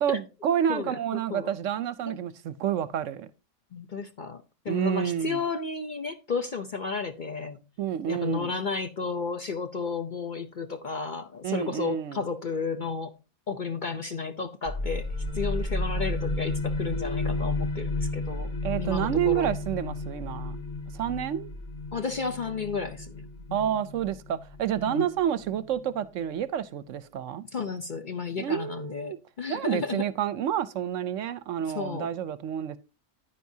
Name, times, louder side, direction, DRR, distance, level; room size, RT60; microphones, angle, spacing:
voice 1, 0.0-3.3 4.7-5.4 7.8-8.5 11.4-12.2 18.6-20.6 20.9-21.5 23.5-27.4 28.4-29.2 29.5-32.8, right 9 dB, 70° right, 0.9 m, -29 dB
voice 2, 0.7-1.5 2.0-2.2 3.7-7.6 8.1-13.1 13.5-15.1 15.3-18.5 18.8-19.5 21.9-23.8 24.9-25.1 27.5-30.0 31.6-32.1, left 4 dB, 45° left, 0.7 m, -33 dB
sound 1, 14.7-26.0, left 2 dB, 85° left, 2.0 m, -33 dB
10.0 x 9.4 x 2.7 m
omnidirectional pair, 1.5 m